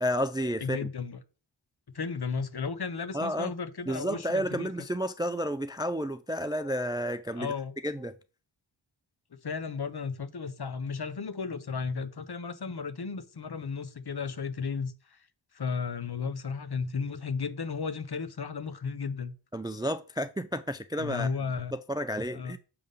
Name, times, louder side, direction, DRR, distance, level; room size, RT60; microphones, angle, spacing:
voice 1, 0.0-0.8 3.1-3.5 3.9-7.5 7.8-8.1 19.5-21.3 21.7-22.6, equal, 10° right, 0.3 m, -31 dB
voice 2, 0.6-1.2 1.9-4.7 7.4-7.7 9.4-15.2 15.5-19.3 21.0-21.7 22.3-22.6, left 5 dB, 50° left, 0.8 m, -34 dB
6.8 x 3.6 x 5.3 m
wide cardioid pair, 45°, 49 cm